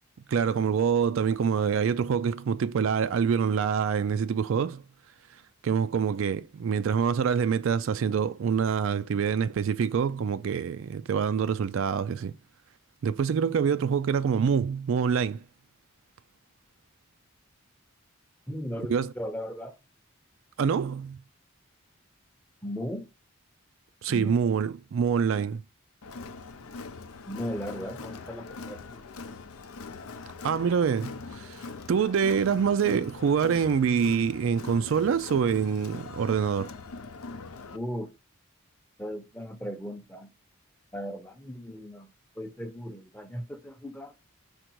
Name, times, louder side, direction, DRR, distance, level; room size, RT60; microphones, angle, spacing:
voice 1, 0.3-4.8 5.6-12.3 13.0-15.4 18.9-19.1 20.6-21.2 24.0-25.6 30.4-31.6 31.9-36.7, right 6 dB, 65° right, 0.3 m, -26 dB
voice 2, 18.5-19.7 22.6-23.0 24.1-24.4 27.3-29.0 37.7-38.1 39.0-40.3 40.9-42.1 42.4-44.1, equal, 5° left, 0.7 m, -37 dB
Crowd, 26.0-37.8, left 4 dB, 80° left, 0.6 m, -42 dB
5.1 x 4.3 x 4.5 m
head